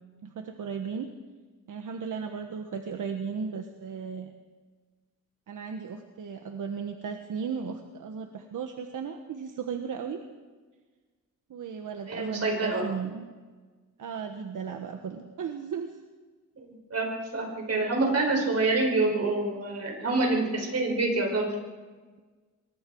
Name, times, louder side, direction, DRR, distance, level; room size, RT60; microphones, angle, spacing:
voice 1, 0.2-1.1 1.7-4.3 5.5-10.2 11.5-13.2 14.0-16.0, right 6 dB, 75° right, 5 dB, 1.5 m, -35 dB
voice 2, 12.1-12.8 16.6-21.5, right 2 dB, 50° right, 1 dB, 5.6 m, -27 dB
25.5 x 22.5 x 4.8 m, 1.4 s
wide cardioid pair, 125°, 31 cm